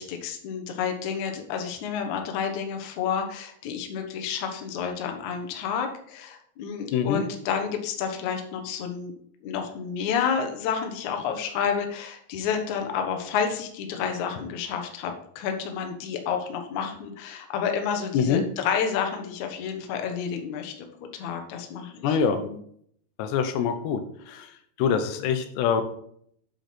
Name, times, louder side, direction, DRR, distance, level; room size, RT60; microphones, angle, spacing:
voice 1, 0.0-9.1 9.4-20.9 21.1-22.6, left 7 dB, 65° left, 5 dB, 2.0 m, -30 dB
voice 2, 6.9-7.2 18.1-18.4 22.0-22.5 23.2-24.0 24.3-24.5 24.8-25.8, left 7 dB, 90° left, 8 dB, 3.1 m, -24 dB
7.9 x 7.6 x 4.3 m, 0.65 s
omnidirectional pair, 4.8 m